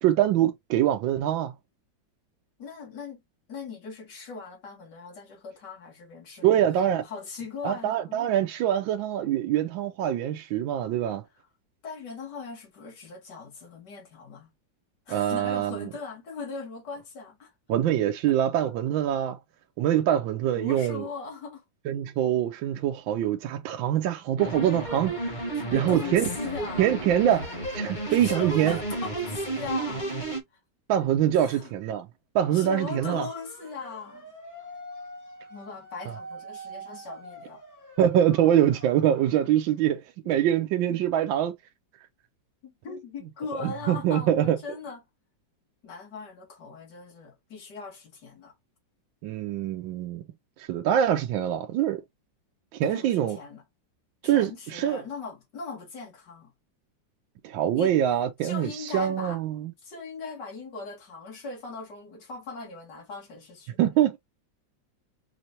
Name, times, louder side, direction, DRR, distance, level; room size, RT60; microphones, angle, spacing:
voice 1, 0.0-1.5 6.4-7.0 7.6-11.2 15.1-15.9 17.7-19.4 19.8-21.1 21.9-25.4 25.7-26.2 26.8-28.8 30.9-32.1 32.3-33.3 38.0-41.5 43.6-44.6 49.2-50.2 50.6-52.0 52.7-53.4 54.2-55.0 57.4-59.7 63.8-64.2, right 11 dB, 80° right, 1.3 m, -24 dB
voice 2, 2.6-3.2 3.5-8.3 11.8-14.5 15.1-17.5 20.5-21.6 25.5-27.4 28.1-30.1 30.5-30.6 31.3-31.7 32.5-34.3 35.5-37.6 40.2-40.4 40.9-41.0 42.6-45.0 45.8-48.5 52.8-53.6 54.2-56.5 57.8-58.0 58.4-59.4 59.8-63.8, left 4 dB, 60° left, 2.3 m, -39 dB
sound 1, 24.4-30.4, right 2 dB, 25° left, 1.3 m, -32 dB
sound 2, 32.4-39.6, right 1 dB, 10° left, 1.2 m, -45 dB
4.9 x 3.2 x 2.8 m
omnidirectional pair, 2.1 m